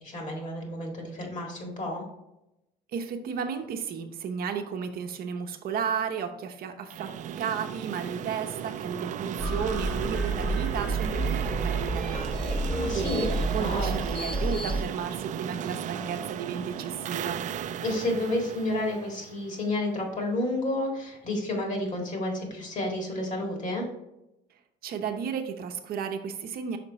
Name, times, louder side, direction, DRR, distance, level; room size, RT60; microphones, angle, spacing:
voice 1, 0.0-2.0 12.7-13.3 13.6-13.9 17.8-23.9, left 1 dB, 45° left, 1 dB, 2.0 m, -30 dB
voice 2, 2.9-12.6 12.9-17.4 24.8-26.8, right 6 dB, 60° right, 5 dB, 0.8 m, -33 dB
sound 1, 6.9-19.8, right 9 dB, 45° right, 0.4 m, -35 dB
sound 2, 9.4-14.8, right 2 dB, 5° left, 1.1 m, -30 dB
5.9 x 4.4 x 4.0 m, 0.90 s
cardioid pair, 110°, 17 cm